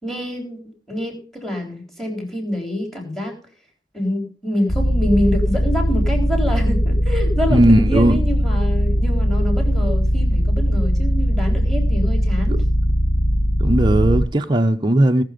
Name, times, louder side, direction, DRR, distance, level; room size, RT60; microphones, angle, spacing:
voice 1, 0.0-3.3 3.9-12.6, equal, ahead, 3.8 m, -26 dB
sound 1, 4.7-14.3, equal, 30° left, 0.7 m, -19 dB
voice 2, 7.5-8.2 12.5-12.6 13.6-15.2, right 1 dB, 25° right, 0.7 m, -16 dB
18.0 x 6.7 x 5.1 m
head